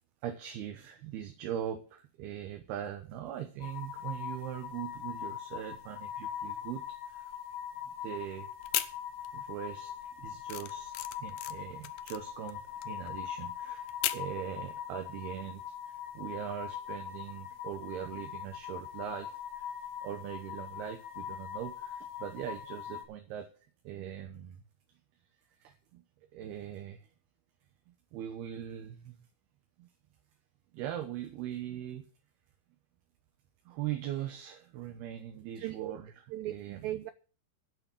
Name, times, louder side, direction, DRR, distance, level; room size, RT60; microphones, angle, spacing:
voice 1, 0.2-7.4 8.0-8.5 9.3-19.7 20.0-23.5 23.8-24.6 25.6-26.0 26.3-27.1 27.9-29.2 29.8-29.9 30.7-32.0 33.7-36.1 36.5-36.8, right 10 dB, 70° right, 2.9 m, -41 dB
sound 1, 3.6-23.1, left 9 dB, 55° left, 3.6 m, -42 dB
sound 2, 8.6-9.5 9.8-14.4, left 14 dB, 80° left, 2.3 m, -37 dB
voice 2, 35.6-35.9 36.3-37.1, right 14 dB, 90° right, 2.0 m, -37 dB
14.0 x 6.8 x 7.1 m
omnidirectional pair, 5.1 m